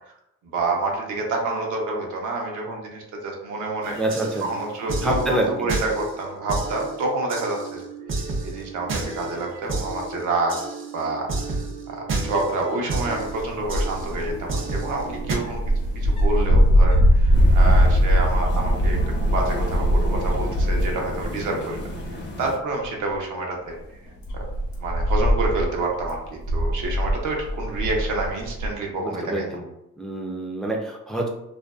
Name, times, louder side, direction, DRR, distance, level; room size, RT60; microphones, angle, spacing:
voice 1, 0.5-4.0 4.4-7.8 8.4-10.6 10.9-11.6 11.9-15.6 15.9-21.8 22.1-23.8 24.3-24.4 24.8-29.4, right 2 dB, 80° right, 0 dB, 0.7 m, -28 dB
sound 1, 3.8-15.4, right 3 dB, 40° right, 0.6 m, -31 dB
voice 2, 4.0-4.5 5.0-5.5 29.0-29.6 30.0-31.3, right 2 dB, ahead, 0 dB, 0.4 m, -26 dB
sound 2, 12.9-21.4 21.7-22.2 22.7-22.8 23.7-28.7, equal, 90° left, 0.8 m, -21 dB
sound 3, 17.3-22.6, left 2 dB, 40° left, 0.7 m, -35 dB
2.5 x 2.2 x 2.3 m, 0.83 s
cardioid pair, 90°, 30 cm